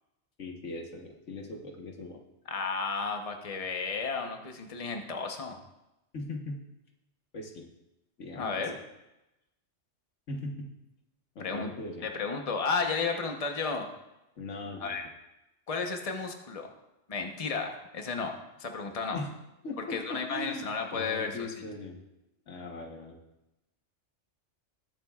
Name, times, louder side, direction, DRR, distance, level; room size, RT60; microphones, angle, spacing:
voice 1, 0.4-2.2 6.1-6.6 7.3-7.6 8.2-8.7 10.3-10.7 11.3-12.1 14.4-15.0 19.1-19.3 19.6-20.6 20.9-22.0 22.5-23.2, left 2 dB, 90° left, 1 dB, 1.6 m, -39 dB
voice 2, 2.5-5.6 8.4-8.7 11.4-11.7 12.0-13.9 14.8-15.0 15.7-16.7 17.1-18.3 18.6-19.2 19.9-21.5, left 4 dB, 30° left, 3 dB, 1.0 m, -33 dB
21.0 x 7.3 x 2.4 m, 0.94 s
omnidirectional pair, 1.2 m